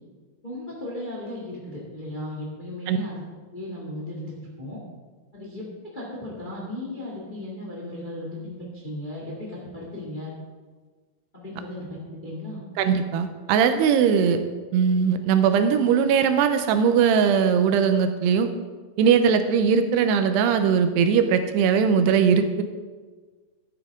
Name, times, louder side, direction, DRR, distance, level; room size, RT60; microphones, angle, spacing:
voice 1, 0.4-3.2 3.5-4.8 5.3-5.6 5.9-10.3 11.3-12.6, left 1 dB, 20° left, -4 dB, 1.5 m, -36 dB
voice 2, 12.8-14.4 14.7-18.5 19.0-22.6, right 7 dB, 85° right, 8 dB, 2.8 m, -20 dB
12.5 x 9.9 x 3.6 m, 1.4 s
omnidirectional pair, 4.7 m